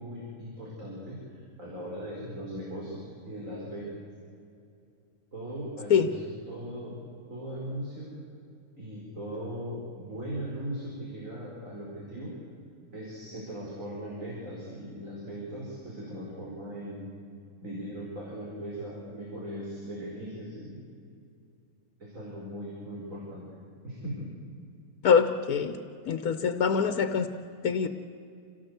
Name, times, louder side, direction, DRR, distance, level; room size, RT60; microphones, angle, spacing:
voice 1, 0.0-3.9 5.3-7.0 7.3-8.1 8.8-12.3 12.9-17.1 17.6-20.8 22.0-23.5 23.8-24.3, equal, 60° right, -4 dB, 5.3 m, -39 dB
voice 2, 25.0-25.8 26.1-27.3 27.6-27.9, left 6 dB, 80° left, 9 dB, 1.4 m, -24 dB
27.5 x 17.5 x 8.1 m, 2.5 s
omnidirectional pair, 1.5 m